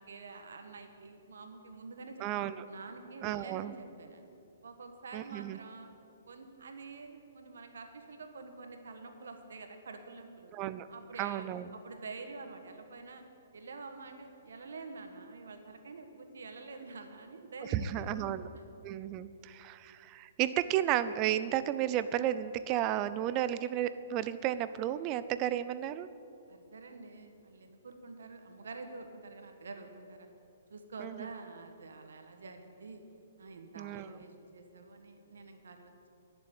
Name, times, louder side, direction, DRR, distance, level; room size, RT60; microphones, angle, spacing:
voice 1, 0.1-2.3 2.7-4.3 4.6-5.9 6.3-10.5 10.9-11.5 11.7-13.2 13.5-18.6 26.5-30.3 30.7-33.0 33.4-36.1, right 3 dB, 75° right, 6 dB, 1.4 m, -47 dB
voice 2, 2.2-2.6 3.2-3.7 5.1-5.6 10.5-10.9 11.2-11.7 17.6-18.5 18.8-26.1 31.0-31.3 33.8-34.1, right 12 dB, 30° right, 14 dB, 0.5 m, -33 dB
11.0 x 7.0 x 8.8 m, 2.7 s
hypercardioid pair, 140°, 0 cm